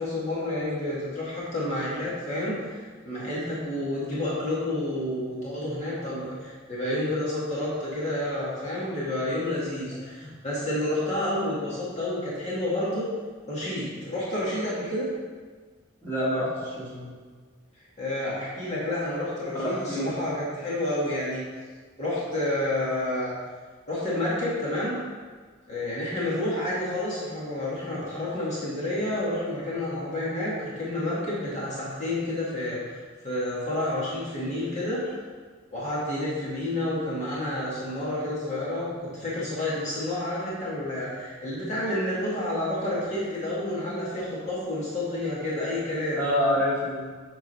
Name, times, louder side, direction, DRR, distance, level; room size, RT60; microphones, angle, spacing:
voice 1, 0.0-13.1 13.5-15.1 18.0-21.5 22.0-23.4 23.9-25.0 25.7-33.0 33.2-35.0 35.7-46.2, left 1 dB, 35° left, -8 dB, 2.2 m, -29 dB
voice 2, 16.0-17.1 19.5-20.1 46.2-47.1, equal, 15° left, -9 dB, 2.2 m, -27 dB
8.8 x 4.0 x 5.5 m, 1.5 s
head